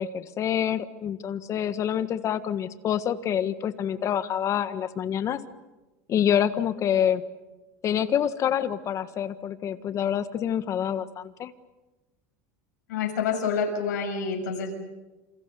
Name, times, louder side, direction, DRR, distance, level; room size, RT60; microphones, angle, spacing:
voice 1, 0.0-5.4 6.1-7.2 7.8-11.5, left 9 dB, 35° left, 12 dB, 1.5 m, -27 dB
voice 2, 12.9-14.8, left 5 dB, 90° left, 1 dB, 6.8 m, -28 dB
28.0 x 28.0 x 6.9 m, 1.1 s
supercardioid pair, 140°, 9 cm